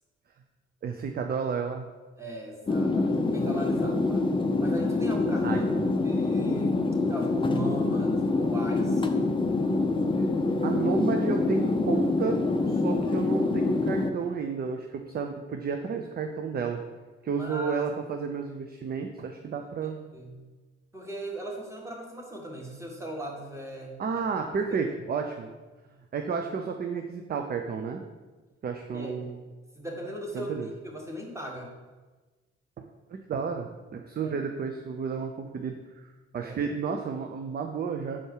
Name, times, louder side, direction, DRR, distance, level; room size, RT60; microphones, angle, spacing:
voice 1, 0.8-1.9 5.4-5.8 10.6-12.4 12.6-16.8 17.2-20.0 24.0-25.5 26.1-28.0 28.6-29.4 30.3-30.7 32.8-32.9 33.3-35.8 36.3-38.2, right 5 dB, 30° right, 4 dB, 0.5 m, -31 dB
voice 2, 2.2-4.3 4.6-5.7 6.0-9.1 17.2-17.8 19.8-20.4 20.9-24.0 28.9-29.1 29.7-30.5 30.8-31.7 34.2-34.4 36.4-36.6, right 1 dB, 10° right, -2 dB, 1.7 m, -38 dB
sound 1, 2.7-14.1, left 3 dB, 15° left, 0.6 m, -26 dB
5.7 x 4.4 x 4.8 m, 1.3 s
figure-of-eight pair, 45°, 33 cm